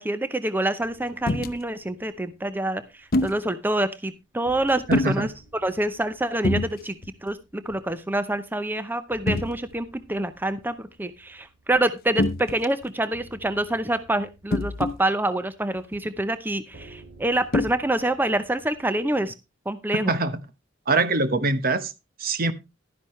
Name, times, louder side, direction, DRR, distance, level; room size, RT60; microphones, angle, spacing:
voice 1, 0.0-5.3 5.6-6.9 7.2-19.3 19.7-20.2, right 1 dB, 10° right, 0.7 m, -26 dB
sound 1, 0.8-3.7 3.9-4.0 4.5-19.2, right 1 dB, 80° right, 6.6 m, -54 dB
sound 2, 1.3-1.5 3.1-3.4 4.9-5.2 6.4-6.7 7.0-7.3 7.7-7.8 9.3-9.5 12.2-12.8 14.5-15.0 15.9-16.0 17.5-17.7, left 2 dB, 50° left, 0.8 m, -24 dB
voice 2, 4.9-5.3 20.1-20.4 20.9-21.9 22.2-22.5, right 3 dB, 50° right, 1.1 m, -23 dB
12.0 x 10.5 x 3.2 m
head